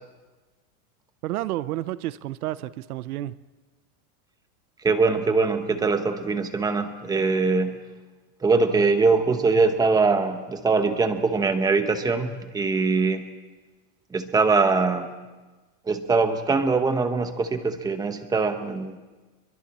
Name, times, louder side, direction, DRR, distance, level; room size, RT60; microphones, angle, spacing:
voice 1, 1.2-3.3, right 15 dB, 90° right, 0.9 m, -30 dB
voice 2, 4.8-7.8 8.4-13.2 14.1-15.1 15.9-19.0, right 4 dB, 10° right, 1.0 m, -22 dB
30.0 x 23.0 x 4.3 m
supercardioid pair, 165°, 43 cm